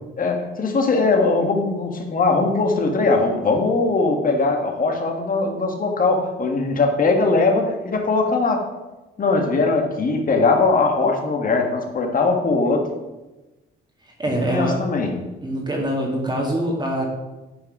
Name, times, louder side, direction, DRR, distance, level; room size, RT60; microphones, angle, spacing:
voice 1, 0.2-8.6 9.2-12.9 14.2-15.3, left 3 dB, 45° left, 3 dB, 1.6 m, -20 dB
voice 2, 14.2-14.8 15.4-17.0, right 1 dB, 20° right, -1 dB, 1.9 m, -24 dB
9.3 x 4.8 x 4.9 m, 1.1 s
cardioid pair, 90°, 20 cm